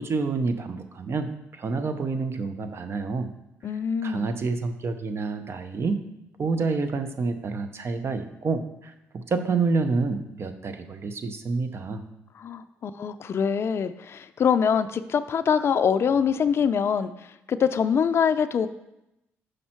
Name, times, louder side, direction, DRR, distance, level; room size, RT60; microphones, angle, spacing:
voice 1, 0.0-3.3 4.0-6.0 6.4-12.0, right 4 dB, 45° right, 8 dB, 0.8 m, -28 dB
voice 2, 3.6-4.3 12.4-18.7, left 7 dB, 45° left, 10 dB, 0.4 m, -24 dB
6.4 x 5.4 x 4.4 m, 0.88 s
supercardioid pair, 65°, 6 cm